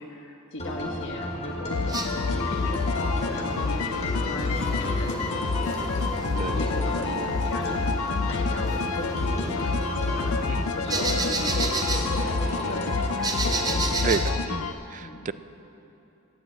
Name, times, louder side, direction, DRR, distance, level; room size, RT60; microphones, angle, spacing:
voice 1, 0.0-2.0 2.3-10.3 10.8-14.3 15.0-15.3, left 1 dB, 60° left, 2 dB, 1.5 m, -37 dB
sound 1, 0.6-14.3, left 1 dB, 30° left, 2.0 m, -33 dB
sound 2, 1.7-14.7, left 4 dB, 90° left, 0.5 m, -28 dB
sound 3, 1.9-14.3, right 3 dB, 20° right, 0.8 m, -35 dB
voice 2, 14.0-15.3, right 5 dB, 35° right, 14 dB, 0.3 m, -30 dB
15.5 x 6.2 x 9.3 m, 3.0 s
head